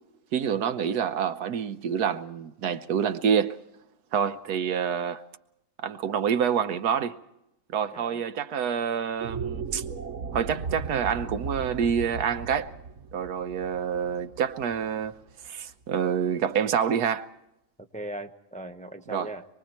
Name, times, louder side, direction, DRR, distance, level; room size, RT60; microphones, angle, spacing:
voice 1, 0.3-3.6 4.1-5.2 5.8-7.2 7.7-9.8 10.3-12.7 13.1-15.1 15.4-17.3 19.1-19.3, right 7 dB, 85° right, 1.4 m, -27 dB
sound 1, 9.1-15.5, right 5 dB, 55° right, 1.3 m, -37 dB
voice 2, 17.9-19.5, right 1 dB, 5° left, 0.8 m, -39 dB
26.0 x 23.0 x 4.4 m
omnidirectional pair, 1.6 m